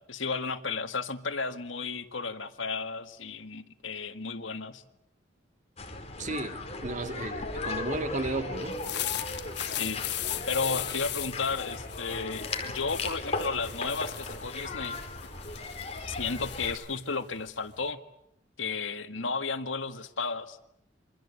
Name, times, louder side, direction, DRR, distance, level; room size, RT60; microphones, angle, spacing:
voice 1, 0.0-4.8 6.2-6.3 9.7-10.0 10.5-15.0 16.1-18.0 18.6-20.6, left 4 dB, 85° left, 1.9 m, -33 dB
sound 1, 5.8-16.7, left 3 dB, 35° left, 4.6 m, -37 dB
voice 2, 6.2-8.8, right 2 dB, 40° right, 2.2 m, -34 dB
sound 2, 8.6-17.9, left 13 dB, 60° left, 1.2 m, -38 dB
28.0 x 25.0 x 8.4 m
head